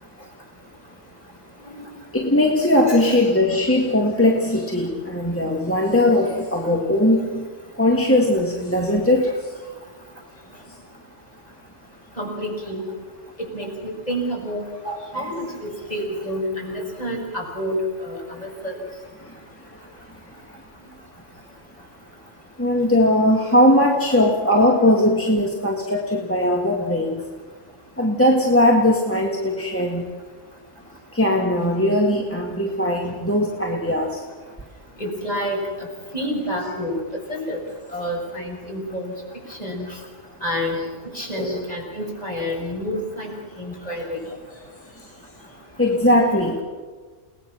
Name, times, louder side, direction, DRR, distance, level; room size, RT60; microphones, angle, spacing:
voice 1, 2.1-7.5 7.8-9.5 15.1-15.3 22.6-27.2 28.0-30.0 31.1-34.2 41.4-41.6 45.8-46.6, left 1 dB, 10° left, 0 dB, 1.9 m, -19 dB
voice 2, 12.2-12.9 13.5-18.8 35.0-35.6 36.1-37.0 37.3-37.6 37.9-39.1 39.5-39.9 40.4-40.8 41.1-43.3 43.6-44.2 46.3-46.4, equal, 30° left, -1 dB, 6.6 m, -28 dB
30.0 x 19.0 x 6.2 m, 1.4 s
omnidirectional pair, 1.2 m